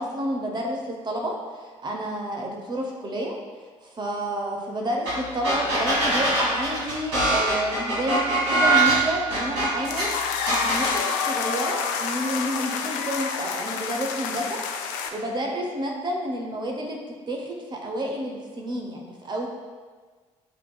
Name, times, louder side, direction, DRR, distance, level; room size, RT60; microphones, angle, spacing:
voice 1, 0.0-3.3 3.8-14.6 15.1-17.0 17.3-19.5, equal, 30° right, 0 dB, 0.7 m, -30 dB
sound 1, 5.1-5.2 5.4-10.0 10.5-11.0, right 2 dB, 70° right, 1.3 m, -22 dB
sound 2, 9.8-15.1, left 6 dB, 60° left, 0.4 m, -28 dB
8.2 x 2.9 x 2.2 m, 1.4 s
figure-of-eight pair, 50°, 16 cm